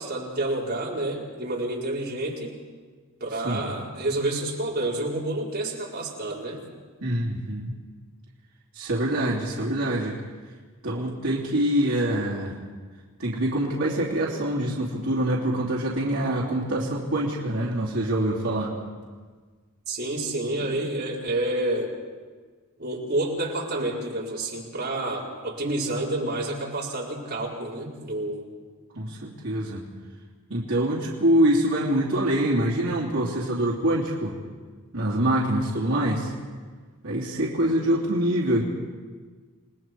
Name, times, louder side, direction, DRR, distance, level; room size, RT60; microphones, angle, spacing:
voice 1, 0.0-2.6 3.2-6.6 19.9-21.9 22.8-28.5, right 1 dB, 50° right, -4 dB, 4.9 m, -29 dB
voice 2, 7.0-7.7 8.7-10.2 10.8-12.6 13.2-18.8 28.9-29.9 30.5-34.4 34.9-36.3 37.0-38.6, right 1 dB, 70° right, -5 dB, 3.1 m, -25 dB
30.0 x 19.5 x 4.7 m, 1.5 s
head